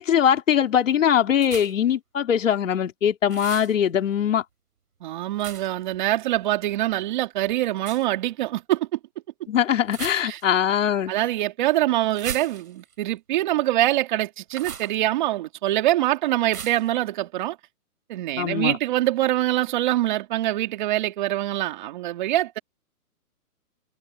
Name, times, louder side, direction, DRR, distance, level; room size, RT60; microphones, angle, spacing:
voice 1, 0.0-4.4 9.5-11.1 18.4-18.8, left 9 dB, 55° left, 3.4 m, -21 dB
sound 1, 1.4-1.9 3.3-3.7 5.4-5.8 7.8-8.1 9.9-10.6 12.1-12.9 14.5-15.0 16.5-16.9, right 7 dB, 75° right, 4.9 m, -37 dB
voice 2, 5.0-8.9 10.2-10.4 11.1-17.6 18.1-22.6, right 15 dB, 30° right, 3.0 m, -24 dB
hypercardioid pair, 165°, 45 cm